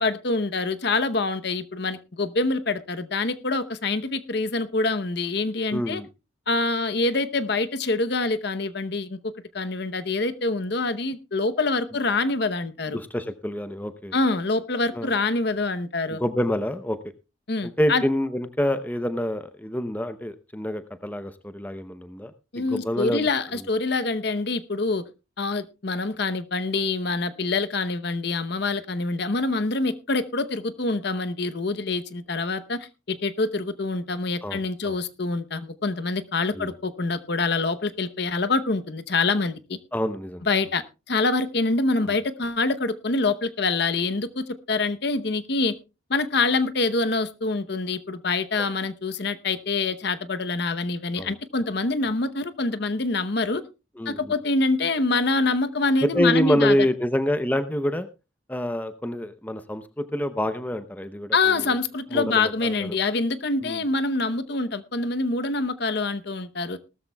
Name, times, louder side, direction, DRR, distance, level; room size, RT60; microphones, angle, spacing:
voice 1, 0.0-6.0 6.5-9.2 9.5-13.0 14.1-16.2 17.5-18.0 22.5-25.0 25.4-39.8 40.5-45.7 46.1-53.6 54.1-56.8 61.3-66.8, left 3 dB, 55° left, 11 dB, 0.8 m, -25 dB
voice 2, 5.7-6.1 12.9-14.1 14.9-15.1 16.1-17.0 17.6-22.3 22.6-23.3 34.4-35.0 36.5-36.7 39.9-40.4 42.0-42.1 48.6-48.7 51.1-51.3 54.0-54.2 56.0-58.1 58.5-61.6 62.1-63.0 63.6-63.8, left 1 dB, 10° left, 11 dB, 0.6 m, -27 dB
18.5 x 13.0 x 2.3 m, 0.29 s
head